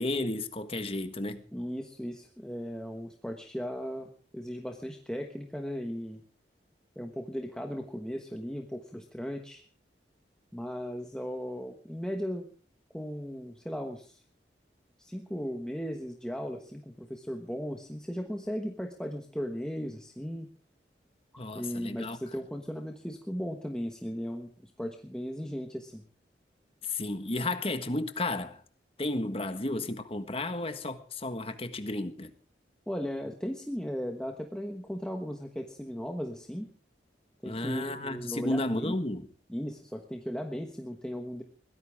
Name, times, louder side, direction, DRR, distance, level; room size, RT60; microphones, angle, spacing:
voice 1, 0.0-1.4 21.4-22.2 26.8-28.6 29.0-32.3 37.4-39.2, left 2 dB, 30° left, 1.5 m, -33 dB
voice 2, 1.5-6.2 7.0-9.6 10.5-12.5 12.9-14.2 15.0-20.5 21.5-26.0 32.9-36.7 37.4-38.9 39.5-41.4, equal, 5° left, 1.2 m, -37 dB
22.5 x 16.0 x 3.6 m
head